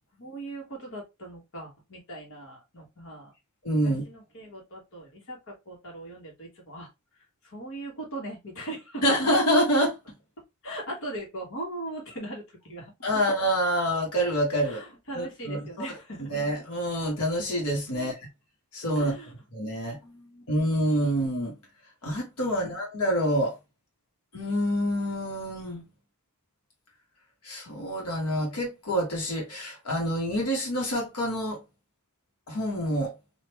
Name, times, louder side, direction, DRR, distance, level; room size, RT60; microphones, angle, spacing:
voice 1, 0.1-3.3 3.8-6.9 7.4-9.0 10.6-13.2 14.6-16.3 17.9-18.1 18.9-19.3 19.9-20.4 22.6-22.8, right 1 dB, 60° left, 1.3 m, -40 dB
voice 2, 3.6-4.0 9.0-10.0 13.0-14.8 15.1-15.8 16.3-18.1 18.7-19.1 19.5-20.0 20.5-21.6 22.0-23.6 24.3-25.8 27.4-31.6 32.5-33.1, equal, 80° left, 1.2 m, -27 dB
3.4 x 2.5 x 2.9 m
head